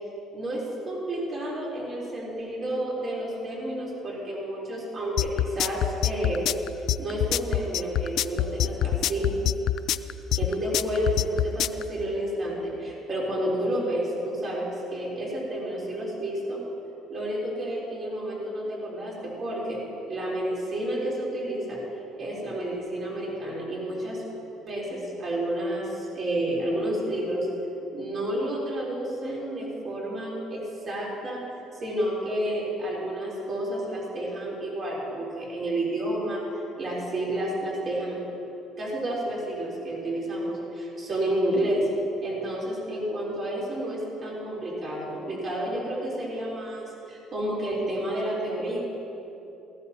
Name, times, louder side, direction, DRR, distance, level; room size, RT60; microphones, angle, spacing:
voice 1, 0.3-6.4 7.0-9.3 10.3-16.6 17.1-21.8 22.2-24.2 24.7-27.5 27.9-31.4 31.8-36.4 36.7-38.2 38.8-41.8 42.2-48.8, right 1 dB, 35° right, -5 dB, 3.6 m, -30 dB
sound 1, 5.2-11.8, left 12 dB, 55° left, 0.3 m, -25 dB
18.5 x 14.0 x 2.9 m, 2.8 s
cardioid pair, 160°, 0 cm